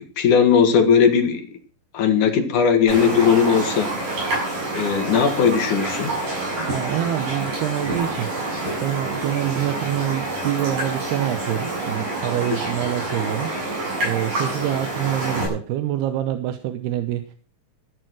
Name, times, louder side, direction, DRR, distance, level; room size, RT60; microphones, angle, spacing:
voice 1, 0.0-1.5 1.9-3.9 4.7-6.2, left 7 dB, 55° left, 6 dB, 3.0 m, -18 dB
Raindrop, 2.9-15.5, right 2 dB, 55° right, 9.1 m, -27 dB
voice 2, 6.6-8.3 8.8-17.3, right 12 dB, 85° right, 9 dB, 3.0 m, -26 dB
14.0 x 11.0 x 6.3 m, 0.41 s
omnidirectional pair, 4.5 m